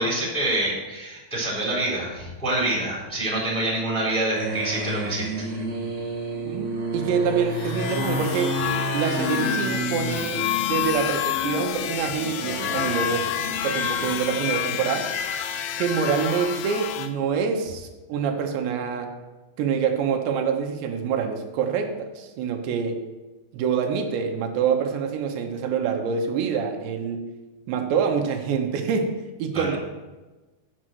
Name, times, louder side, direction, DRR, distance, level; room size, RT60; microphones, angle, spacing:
voice 1, 0.0-5.5 29.5-29.7, right 1 dB, ahead, -4 dB, 2.9 m, -26 dB
sound 1, 4.3-11.6 12.0-14.1, right 1 dB, 55° right, 1.1 m, -31 dB
voice 2, 6.5-15.1 15.8-19.1 19.6-23.0 23.5-27.3 27.7-29.1 29.4-29.8, right 6 dB, 85° right, 4 dB, 3.2 m, -26 dB
sound 2, 7.5-17.1, left 10 dB, 80° left, 2.3 m, -28 dB
7.8 x 7.4 x 6.1 m, 1.2 s
omnidirectional pair, 4.9 m